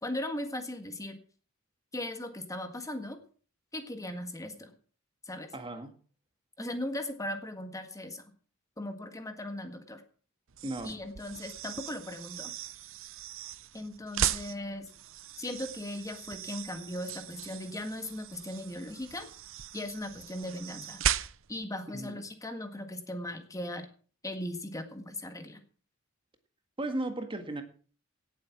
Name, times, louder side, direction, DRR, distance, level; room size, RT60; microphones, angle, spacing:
voice 1, 0.0-1.2 1.9-3.2 3.7-4.7 5.3-5.5 6.6-8.2 8.8-10.0 10.8-12.5 13.7-14.9 15.4-19.3 19.7-21.0 21.5-23.9 24.2-25.6, left 1 dB, 15° left, 7 dB, 1.7 m, -38 dB
voice 2, 5.5-5.9 10.6-10.9 21.9-22.2 26.8-27.6, right 1 dB, 25° right, 7 dB, 1.8 m, -35 dB
sound 1, 10.5-21.7, right 10 dB, 70° right, 0.7 m, -37 dB
18.0 x 7.9 x 6.0 m, 0.41 s
head